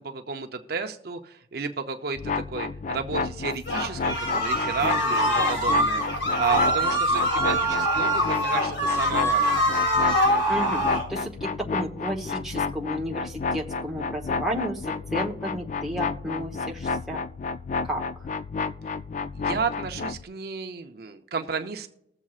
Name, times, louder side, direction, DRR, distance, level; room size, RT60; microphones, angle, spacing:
voice 1, 0.0-6.0 6.4-9.5 19.3-21.9, right 5 dB, 55° right, 6 dB, 0.6 m, -32 dB
sound 1, 2.2-20.2, left 4 dB, 40° left, 0.3 m, -31 dB
sound 2, 3.7-11.1, equal, 65° left, 2.0 m, -24 dB
voice 2, 10.5-17.2 17.8-18.3, equal, ahead, -2 dB, 1.0 m, -32 dB
20.5 x 7.3 x 2.4 m, 0.83 s
head